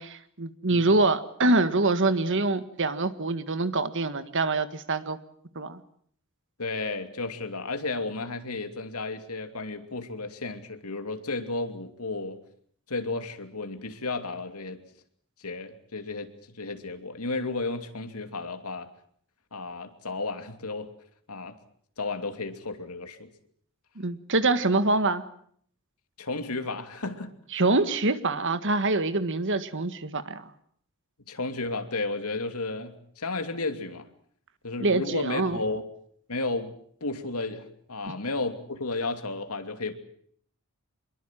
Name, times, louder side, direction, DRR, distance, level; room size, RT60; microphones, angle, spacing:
voice 1, 0.0-5.2 5.5-5.8 23.9-25.2 27.5-30.5 34.8-35.6, right 2 dB, 60° right, 12 dB, 1.7 m, -25 dB
voice 2, 6.6-12.4 12.9-14.8 15.4-18.9 19.5-20.9 21.3-21.6 22.0-23.3 26.2-27.6 31.3-34.1 34.6-35.8 36.3-36.8 37.0-39.9, left 3 dB, 85° left, 8 dB, 2.8 m, -33 dB
25.5 x 22.5 x 7.6 m, 0.62 s
head